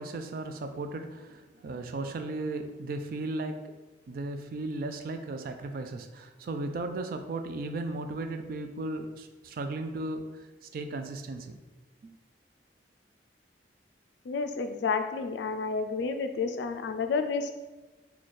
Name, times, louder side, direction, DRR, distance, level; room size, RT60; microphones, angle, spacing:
voice 1, 0.0-3.7 4.1-11.6 12.0-12.1, right 2 dB, 55° right, 6 dB, 0.3 m, -36 dB
voice 2, 14.3-17.5, left 4 dB, 80° left, 8 dB, 0.3 m, -30 dB
4.1 x 2.3 x 3.1 m, 1.1 s
head